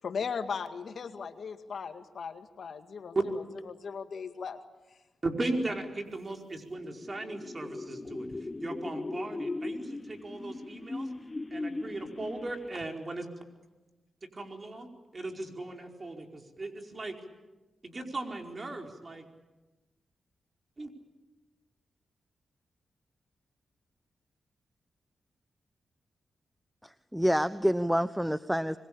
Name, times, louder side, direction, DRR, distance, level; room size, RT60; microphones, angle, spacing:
voice 1, 0.0-4.6, left 6 dB, 70° left, 8 dB, 1.9 m, -38 dB
voice 2, 5.2-8.3 8.6-11.1 11.5-13.3 14.3-17.2 17.8-19.2 20.8-20.9, right 2 dB, 40° right, 3 dB, 4.7 m, -37 dB
sound 1, 6.4-12.8, left 2 dB, 30° left, 0.9 m, -39 dB
voice 3, 26.8-28.8, equal, ahead, 13 dB, 1.0 m, -28 dB
25.5 x 22.0 x 8.8 m, 1.1 s
supercardioid pair, 45°, 0 cm